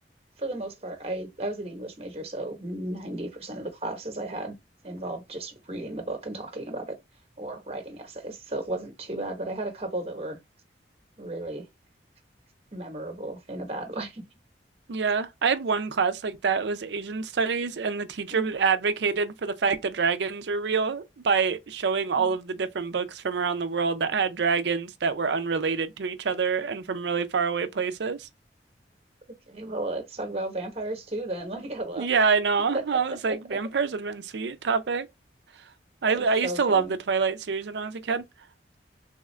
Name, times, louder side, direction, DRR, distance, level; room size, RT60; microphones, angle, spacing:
voice 1, 0.4-4.5 4.8-7.0 7.4-10.4 11.2-11.7 12.7-14.2 18.3-18.5 22.1-22.4 29.5-32.1 32.7-32.8 33.3-33.6 36.0-37.0, right 1 dB, 35° right, 0.9 m, -34 dB
voice 2, 14.9-28.3 32.0-35.1 36.0-38.2, right 5 dB, 75° right, 0.5 m, -26 dB
3.5 x 2.4 x 3.1 m
head